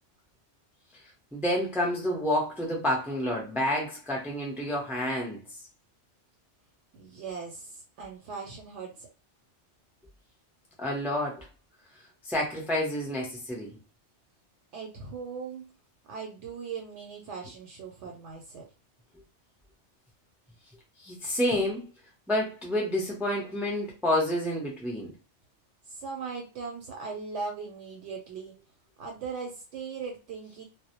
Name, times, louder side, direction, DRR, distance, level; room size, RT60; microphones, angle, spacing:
voice 1, 1.3-5.4 10.8-11.5 12.3-13.8 21.0-21.9 22.3-25.1, left 1 dB, ahead, 0.4 m, -29 dB
voice 2, 6.9-9.1 14.7-15.7 16.1-18.7 25.9-28.5 29.0-30.6, right 5 dB, 75° right, 0.9 m, -39 dB
2.1 x 2.0 x 2.8 m
omnidirectional pair, 1.2 m